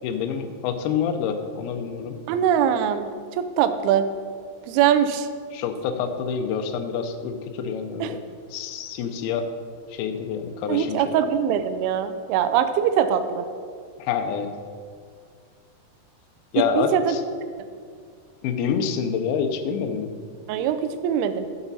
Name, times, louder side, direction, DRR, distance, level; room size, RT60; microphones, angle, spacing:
voice 1, 0.0-2.2 5.5-8.2 8.5-9.5 9.9-11.1 14.0-14.5 16.5-17.2 18.4-20.1, left 6 dB, 80° left, 6 dB, 2.4 m, -27 dB
voice 2, 2.3-3.1 3.4-4.1 4.7-5.3 8.0-8.2 10.7-13.5 16.6-17.2 20.5-21.5, right 9 dB, 80° right, 9 dB, 2.4 m, -22 dB
12.0 x 7.1 x 4.1 m, 2.1 s
omnidirectional pair, 4.8 m